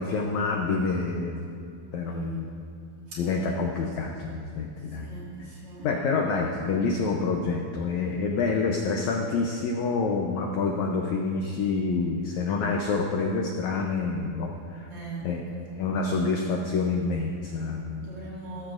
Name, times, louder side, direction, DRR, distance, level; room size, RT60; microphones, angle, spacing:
voice 1, 0.0-1.5 1.9-2.4 3.2-5.1 5.8-14.9 15.2-15.4 15.8-18.2, left 4 dB, 80° left, 1 dB, 1.7 m, -27 dB
voice 2, 2.0-2.5 3.1-3.4 4.8-5.9 14.9-15.6 18.0-18.7, equal, 40° right, -6 dB, 3.1 m, -40 dB
19.5 x 13.5 x 2.5 m, 2.4 s
omnidirectional pair, 4.3 m